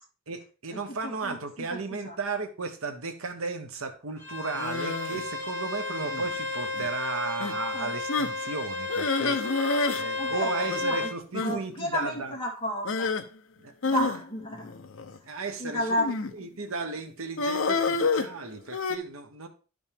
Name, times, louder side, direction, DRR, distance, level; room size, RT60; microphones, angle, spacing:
voice 1, 0.3-9.7 10.0-12.3 13.6-14.1 15.3-16.0 16.3-19.5, right 4 dB, 80° right, 7 dB, 1.0 m, -35 dB
voice 2, 1.0-1.4 2.0-2.2 7.7-7.9 10.2-11.1 11.4-13.1 13.8-14.7 15.6-16.1, equal, 25° left, -2 dB, 2.2 m, -31 dB
Bowed string instrument, 4.2-11.1, left 2 dB, 15° right, 4.3 m, -33 dB
sound 1, 4.6-5.2 6.0-6.4 6.7-6.9 7.4-7.5 8.1-8.4 8.9-10.1 10.3-10.4 10.7-10.8 11.3-11.6 12.8-13.2 13.8-15.2 16.0-16.4 17.4-19.0, left 4 dB, 65° left, 0.7 m, -28 dB
11.5 x 5.2 x 3.5 m, 0.36 s
head